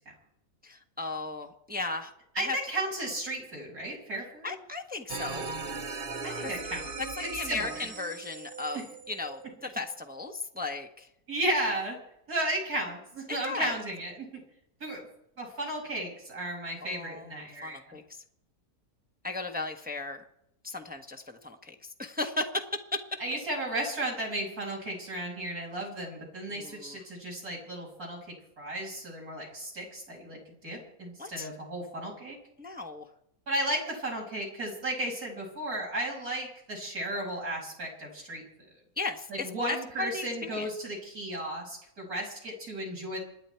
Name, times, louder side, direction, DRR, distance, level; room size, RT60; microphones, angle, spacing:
voice 1, 0.6-2.6 4.4-5.5 6.4-6.5 7.2-11.1 13.3-13.8 16.8-18.0 19.2-20.2 20.6-23.0 26.5-27.0 31.2-31.5 32.6-33.1 39.0-39.3 39.7-40.7, left 3 dB, 5° right, 4 dB, 1.1 m, -36 dB
voice 2, 2.3-4.5 6.2-6.9 7.2-7.9 8.7-8.8 11.3-12.0 12.3-14.3 14.8-15.0 15.4-18.0 23.2-32.4 33.5-38.4 39.3-43.2, right 1 dB, 70° right, -2 dB, 6.7 m, -34 dB
sound 1, 5.1-10.0, right 4 dB, 40° right, 1.1 m, -39 dB
27.0 x 10.5 x 4.6 m, 0.77 s
omnidirectional pair, 1.6 m